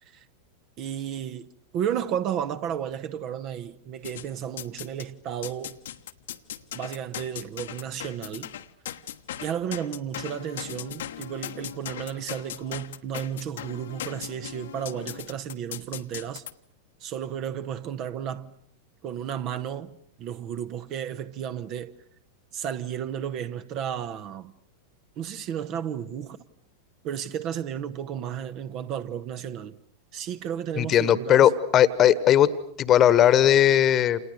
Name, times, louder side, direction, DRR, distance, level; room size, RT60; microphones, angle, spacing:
voice 1, 0.8-5.8 6.7-8.5 9.4-16.4 17.0-18.5 19.0-21.9 22.5-24.5 25.2-26.4 27.0-29.8 30.1-31.5, right 9 dB, 40° right, 1.3 m, -33 dB
sound 1, 4.0-5.1 5.4-16.5, left 11 dB, 60° left, 1.2 m, -38 dB
voice 2, 30.8-32.5 32.8-34.2, left 10 dB, 30° left, 1.4 m, -18 dB
29.0 x 28.5 x 6.6 m
figure-of-eight pair, 90°, 0 cm